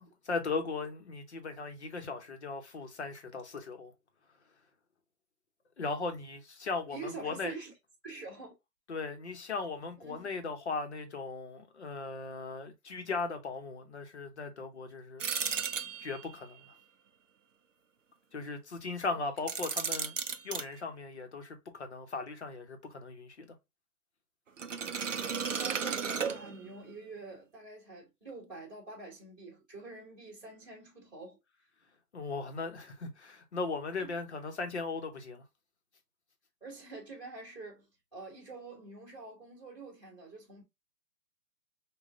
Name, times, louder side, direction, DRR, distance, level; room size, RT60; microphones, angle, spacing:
voice 1, 0.0-3.9 5.8-7.5 8.9-15.2 16.0-16.7 18.3-20.2 20.4-23.5 32.1-35.4, left 4 dB, 45° left, 0.8 m, -38 dB
voice 2, 6.9-7.7 8.0-8.5 10.0-10.3 19.1-19.2 25.4-31.4 34.0-34.1 36.6-40.6, right 3 dB, 5° left, 1.1 m, -46 dB
Gliss plectrum over pegs, 15.2-16.4 19.4-20.7 24.6-26.8, right 6 dB, 50° right, 0.5 m, -34 dB
4.9 x 2.3 x 2.4 m
hypercardioid pair, 175°, 49 cm